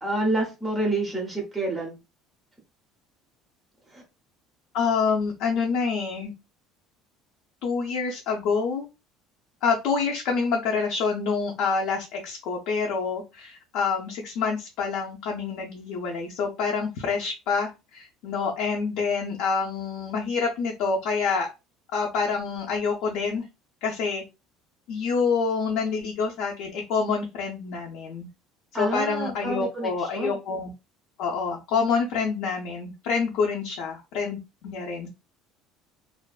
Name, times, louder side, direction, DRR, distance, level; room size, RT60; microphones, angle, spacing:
voice 1, 0.0-2.0 3.9-4.0 28.7-30.4, right 2 dB, 5° right, -1 dB, 0.5 m, -28 dB
voice 2, 4.7-6.3 7.6-8.9 9.6-21.5 21.9-23.5 23.8-24.2 24.9-28.3 28.7-30.7 31.2-35.1, left 5 dB, 55° left, 0 dB, 0.5 m, -27 dB
2.5 x 2.2 x 2.3 m, 0.26 s
cardioid pair, 180°, 0 cm